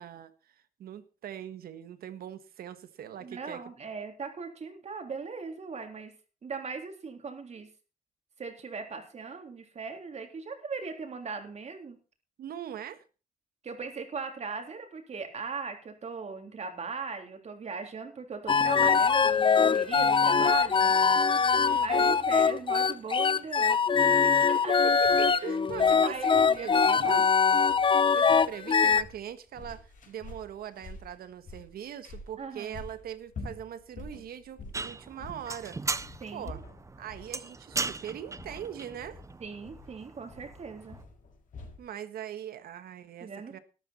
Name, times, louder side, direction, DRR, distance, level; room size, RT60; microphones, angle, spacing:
voice 1, 0.0-3.6 12.4-13.0 21.4-22.4 24.2-24.3 24.8-27.3 28.1-35.8 36.3-36.6 37.0-39.2 41.8-43.6, right 9 dB, 75° right, 12 dB, 1.5 m, -41 dB
voice 2, 3.2-6.1 6.4-7.7 8.4-12.0 13.6-21.0 21.8-24.7 26.0-27.2 32.4-32.8 36.2-36.6 39.4-41.0 43.2-43.6, right 5 dB, 45° right, 5 dB, 3.4 m, -39 dB
sound 1, 18.5-29.0, left 5 dB, 35° left, 0.6 m, -23 dB
sound 2, 25.0-41.9, left 3 dB, 60° left, 5.3 m, -48 dB
sound 3, 34.7-41.0, right 3 dB, 20° right, 0.6 m, -38 dB
13.0 x 12.0 x 4.3 m, 0.34 s
cardioid pair, 100°, 16 cm